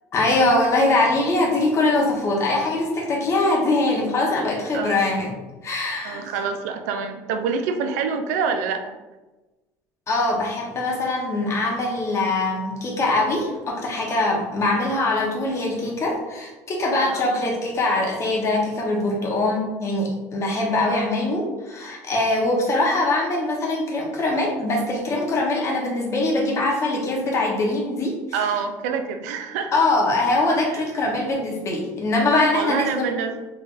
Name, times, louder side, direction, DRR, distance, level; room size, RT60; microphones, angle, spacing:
voice 1, 0.1-5.3 5.6-6.3 10.1-28.4 29.7-33.1, left 2 dB, 35° left, -1 dB, 1.1 m, -22 dB
voice 2, 4.7-5.1 6.0-9.0 17.1-17.3 28.3-29.8 30.6-31.1 32.5-33.4, right 6 dB, 90° right, 7 dB, 0.4 m, -27 dB
3.6 x 3.4 x 2.6 m, 1.1 s
supercardioid pair, 95°, 8 cm